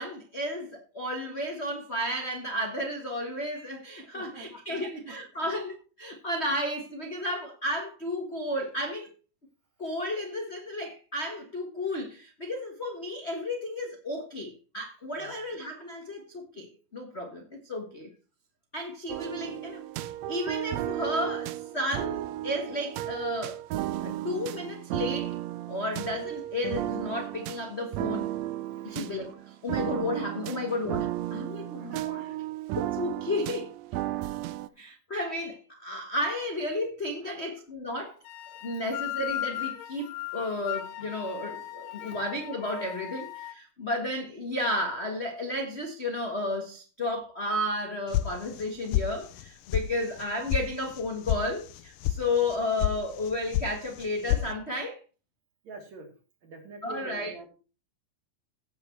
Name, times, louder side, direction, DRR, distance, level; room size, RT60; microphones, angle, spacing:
voice 1, 0.0-9.1 9.8-18.1 18.7-23.6 24.0-25.4 25.7-28.3 28.8-32.2 32.8-33.7 34.8-38.2 38.6-55.0 56.8-57.3, left 1 dB, 40° left, 0.9 m, -33 dB
voice 2, 4.0-4.5 4.7-5.1 5.4-5.5 15.1-15.4 19.5-19.6 28.8-29.0 30.5-30.8 31.6-32.5 34.2-34.3 37.2-37.4 42.0-42.2 55.6-56.1 56.4-57.5, right 3 dB, 60° right, 3.8 m, -47 dB
sound 1, 19.1-34.7, right 14 dB, 80° right, 1.6 m, -34 dB
sound 2, 38.2-43.5, left 13 dB, 75° left, 1.8 m, -37 dB
sound 3, 48.1-48.7 48.9-49.5 49.7-49.8 50.2-50.6 50.9-51.4 51.7-52.2 52.5-53.0 53.2-53.7 54.0-54.5, left 14 dB, 90° left, 2.4 m, -27 dB
16.5 x 6.6 x 4.5 m
omnidirectional pair, 3.7 m